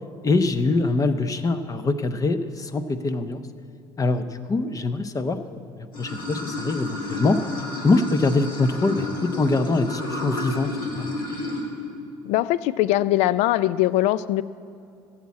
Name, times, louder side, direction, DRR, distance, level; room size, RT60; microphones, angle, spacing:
voice 1, 0.2-3.4 4.0-5.6 6.0-7.4 7.8-9.1 9.3-10.7 11.0-11.1, left 3 dB, 30° left, 11 dB, 0.8 m, -23 dB
Water / Sink (filling or washing), 5.9-11.6, left 2 dB, 50° left, 3.7 m, -31 dB
voice 2, 12.2-14.4, left 15 dB, 75° left, 18 dB, 0.4 m, -21 dB
15.0 x 7.4 x 8.4 m, 2.5 s
supercardioid pair, 85°, 12 cm